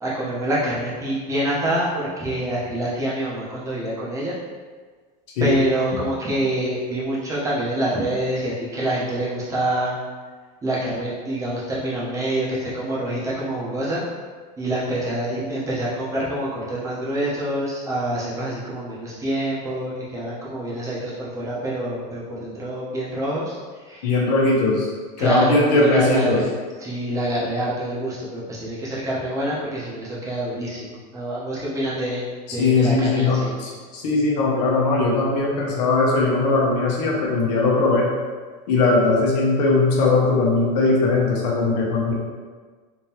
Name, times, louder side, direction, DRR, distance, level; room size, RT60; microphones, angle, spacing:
voice 1, 0.0-4.3 5.4-10.0 10.6-14.0 14.6-23.6 23.8-24.2 25.2-26.4 26.8-32.2 32.5-33.5, right 1 dB, 15° right, -7 dB, 0.9 m, -26 dB
voice 2, 24.0-24.9 25.2-26.4 32.6-38.1 38.7-42.1, left 3 dB, 75° left, -3 dB, 1.0 m, -19 dB
3.6 x 3.2 x 2.9 m, 1.5 s
supercardioid pair, 165°, 21 cm